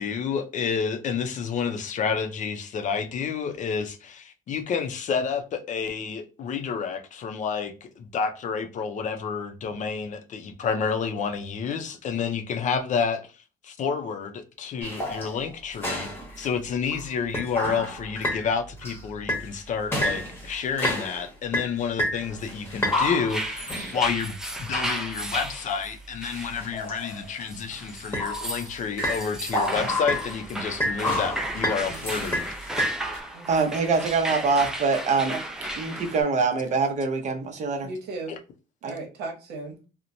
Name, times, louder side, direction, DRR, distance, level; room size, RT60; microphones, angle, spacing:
voice 1, 0.0-13.2 13.6-16.1 16.4-32.5, left 6 dB, 45° left, 0.5 m, -29 dB
sound 1, 14.8-16.5 16.9-17.0 17.3-18.4 18.8-19.0 19.3-19.6 19.9-21.3 21.5-24.1 25.5-25.6 26.3-27.5 28.1-28.6 29.0-30.4 30.8-33.2, left 1 dB, 15° left, 1.0 m, -29 dB
sound 2, 22.8-36.2, right 1 dB, 5° right, 0.4 m, -35 dB
voice 2, 31.6-32.0 33.3-33.7 35.1-35.4 37.8-38.3 38.8-39.8, right 3 dB, 75° right, 0.9 m, -37 dB
voice 3, 33.5-35.3 35.8-37.9 38.8-38.9, right 4 dB, 45° right, 0.7 m, -24 dB
2.9 x 2.1 x 2.6 m
cardioid pair, 110°, 17 cm